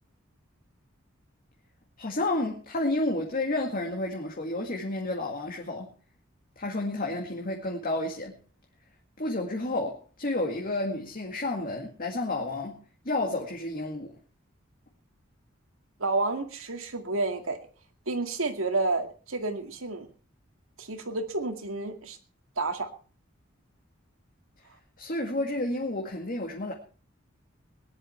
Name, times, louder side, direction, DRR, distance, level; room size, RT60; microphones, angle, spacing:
voice 1, 2.0-5.9 6.6-8.4 9.2-12.8 13.0-14.1 25.0-26.7, left 2 dB, 45° left, 1 dB, 2.1 m, -31 dB
voice 2, 16.0-17.6 18.1-20.1 20.8-22.2 22.6-22.9, right 3 dB, 90° right, 6 dB, 2.2 m, -30 dB
19.5 x 11.0 x 4.4 m, 0.38 s
head